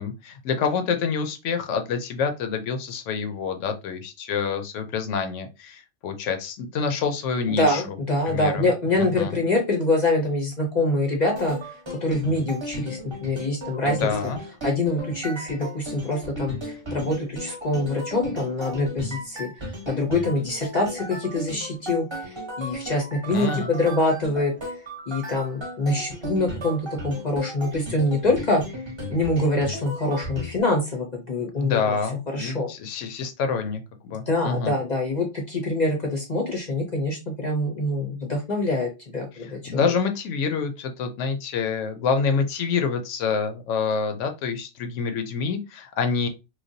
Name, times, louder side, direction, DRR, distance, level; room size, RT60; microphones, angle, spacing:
voice 1, 0.0-7.8 8.3-8.7 9.0-9.3 13.8-14.4 23.3-23.7 31.6-34.8 39.3-46.3, left 5 dB, 70° left, 0.9 m, -27 dB
voice 2, 7.5-11.6 12.0-14.3 14.6-19.5 19.9-24.5 25.1-28.6 29.1-31.9 32.3-32.7 34.3-40.0, left 2 dB, 45° left, 0.6 m, -25 dB
sound 1, 11.3-30.6, equal, 25° right, 0.8 m, -36 dB
3.1 x 2.2 x 2.6 m
omnidirectional pair, 1.4 m